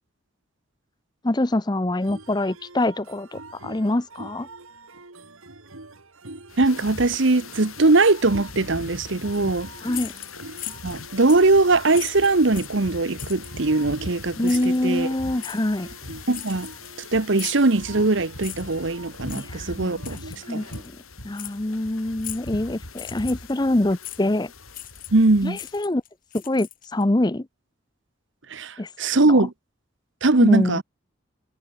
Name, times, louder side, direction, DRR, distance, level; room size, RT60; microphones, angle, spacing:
voice 1, 1.2-4.5 9.8-10.1 14.4-15.9 19.3-20.2 20.5-20.9 21.2-24.5 25.4-26.0 26.3-27.5 28.8-28.9 29.3-29.4 30.4-30.8, left 1 dB, 20° left, 0.6 m, -25 dB
sound 1, 2.0-20.8, right 2 dB, 75° right, 2.8 m, -45 dB
sound 2, 6.5-25.8, left 3 dB, 80° left, 6.3 m, -41 dB
voice 2, 6.6-9.7 10.8-15.1 16.3-16.7 17.1-20.2 20.5-20.6 25.1-25.6 28.5-29.5 30.2-30.8, right 3 dB, 60° right, 1.0 m, -20 dB
sound 3, 9.9-11.0 11.3-11.5 11.9-12.8 13.2-13.5 14.4-14.8 15.4-15.6 16.3-17.0 17.4-17.7 18.4-18.8 19.3-19.5 20.0-20.4 20.7-20.9 21.3-21.6 22.2-22.5 22.9-23.5 24.0-24.2 24.7-25.2 25.5-27.0, left 14 dB, 40° left, 4.8 m, -38 dB
head